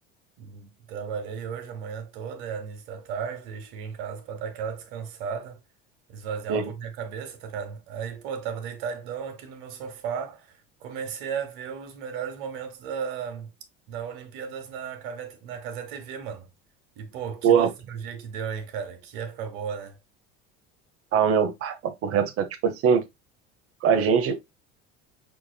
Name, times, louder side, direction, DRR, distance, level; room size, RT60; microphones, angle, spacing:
voice 1, 0.4-5.6 6.1-13.5 13.9-16.5 17.0-20.0, right 7 dB, 75° right, 1.2 m, -35 dB
voice 2, 21.1-23.1 23.8-24.4, right 7 dB, 50° right, 0.8 m, -22 dB
5.8 x 2.7 x 2.2 m
supercardioid pair, 90°, 30 cm